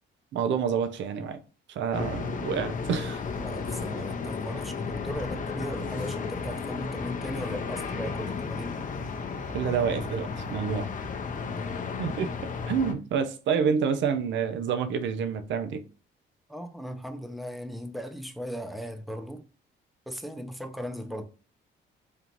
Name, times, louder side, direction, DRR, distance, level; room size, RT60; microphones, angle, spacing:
voice 1, 0.3-1.4 1.7-3.2 9.5-10.9 12.0-12.3 12.7-15.8, right 6 dB, 70° right, 0.6 m, -28 dB
sound 1, 1.9-12.9, left 5 dB, 40° left, 0.7 m, -34 dB
voice 2, 3.3-8.8 11.4-11.7 16.5-19.4 20.1-21.2, equal, ahead, 0.7 m, -37 dB
5.4 x 2.4 x 2.9 m
cardioid pair, 90°, 20 cm